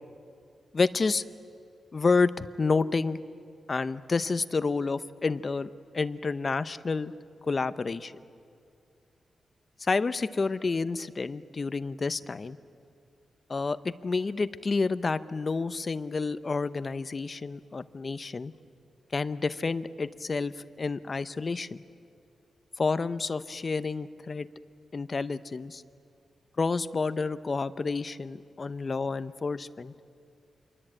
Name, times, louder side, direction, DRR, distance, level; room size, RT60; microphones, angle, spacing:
voice 1, 0.7-1.2 1.9-3.2 3.7-7.1 7.5-8.1 9.8-12.6 13.5-18.5 19.1-21.8 22.8-24.5 24.9-25.8 26.6-29.9, left 4 dB, 30° left, 14 dB, 0.7 m, -29 dB
27.5 x 23.0 x 8.9 m, 2.4 s
wide cardioid pair, 150°, 0 cm